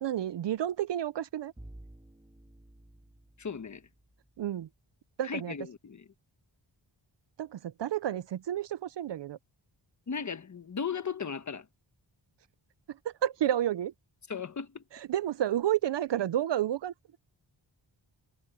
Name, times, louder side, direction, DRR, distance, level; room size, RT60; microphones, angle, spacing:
voice 1, 0.0-1.5 4.4-4.7 5.2-5.5 7.4-9.4 12.9-13.9 14.9-16.9, right 11 dB, 65° right, 0.5 m, -30 dB
Bowed string instrument, 1.6-4.6, right 1 dB, 10° right, 3.2 m, -53 dB
voice 2, 3.4-3.8 5.2-6.0 10.1-11.6 14.3-14.8, left 6 dB, 40° left, 1.2 m, -36 dB
wide cardioid pair, 145°, 47 cm